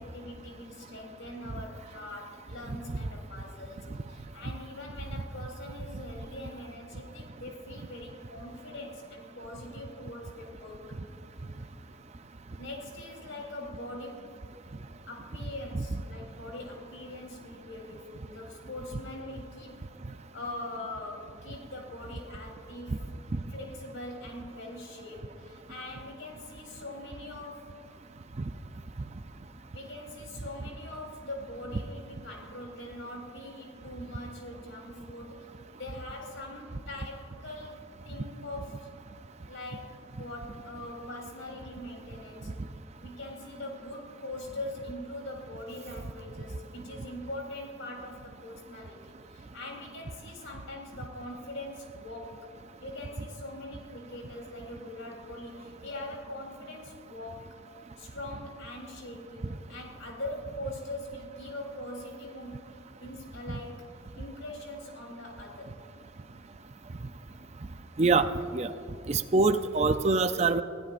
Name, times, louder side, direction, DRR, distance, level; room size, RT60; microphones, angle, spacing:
voice 1, 0.0-11.0 12.6-14.4 15.1-19.9 20.3-23.0 23.5-27.8 29.7-38.9 39.5-42.5 43.0-52.3 52.8-57.5 58.0-62.7 63.0-63.8 64.2-65.8, left 1 dB, 70° left, 0 dB, 3.5 m, -42 dB
voice 2, 69.1-70.6, right 3 dB, 35° right, 10 dB, 0.4 m, -24 dB
26.0 x 16.0 x 2.5 m, 2.5 s
head